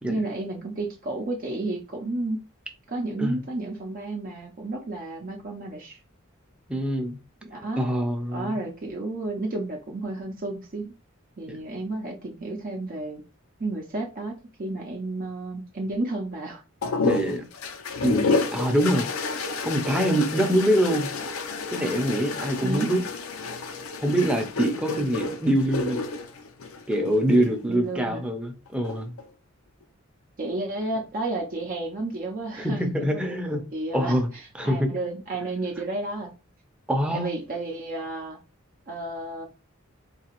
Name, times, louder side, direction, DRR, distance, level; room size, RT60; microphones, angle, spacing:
voice 1, 0.1-2.4 2.9-6.0 7.4-7.9 8.3-10.9 11.4-13.2 13.6-16.6 22.6-22.9 27.7-28.2 30.4-36.3 37.1-38.4 38.9-39.5, right 2 dB, 45° right, 0.6 m, -32 dB
voice 2, 6.7-7.2 7.8-8.5 11.5-11.6 17.0-17.4 18.0-21.1 21.7-23.1 24.0-26.0 26.9-29.2 32.6-33.6 33.9-34.3 34.5-34.9 36.9-37.3, right 1 dB, 5° right, 0.6 m, -24 dB
sound 1, 16.8-27.5 28.7-29.2, left 4 dB, 85° left, 0.6 m, -30 dB
4.0 x 2.8 x 2.9 m
head